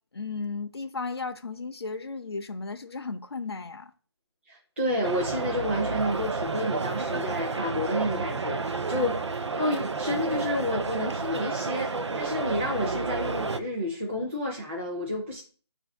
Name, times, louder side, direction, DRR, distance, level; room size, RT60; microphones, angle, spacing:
voice 1, 0.1-3.9 9.0-9.1, left 4 dB, 65° left, 0.5 m, -35 dB
voice 2, 4.5-15.4, left 1 dB, 25° right, 0.6 m, -30 dB
sound 1, 5.0-13.6, right 4 dB, 85° right, 0.6 m, -31 dB
5.7 x 2.6 x 3.5 m
figure-of-eight pair, 180°, 14 cm